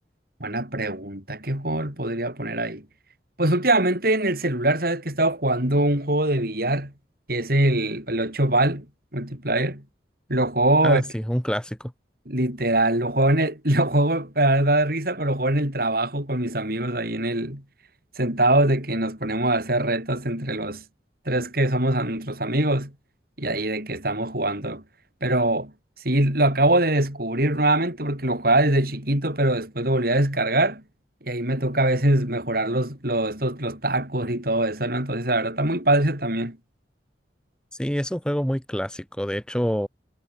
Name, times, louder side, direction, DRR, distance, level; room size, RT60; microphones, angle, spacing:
voice 1, 0.4-2.9 3.4-6.9 7.3-8.9 9.1-9.8 10.3-11.1 12.3-17.6 18.2-20.8 21.3-22.9 23.4-24.8 25.2-25.7 26.0-30.8 31.2-36.6, right 1 dB, 55° right, 7.6 m, -23 dB
voice 2, 10.8-11.9 37.8-39.9, equal, 5° left, 2.6 m, -26 dB
head